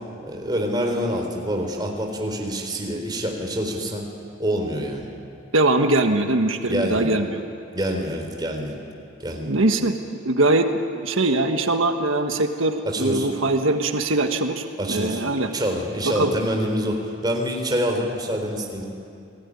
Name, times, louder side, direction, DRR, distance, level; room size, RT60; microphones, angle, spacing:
voice 1, 0.2-4.0 4.4-5.1 6.7-7.1 7.7-8.8 9.2-9.5 12.9-13.3 14.8-18.8, equal, 20° right, 2 dB, 3.9 m, -26 dB
voice 2, 5.5-7.4 9.4-10.0 10.2-15.5 16.0-16.3, right 2 dB, 85° right, 5 dB, 1.4 m, -22 dB
30.0 x 20.0 x 9.8 m, 2.6 s
head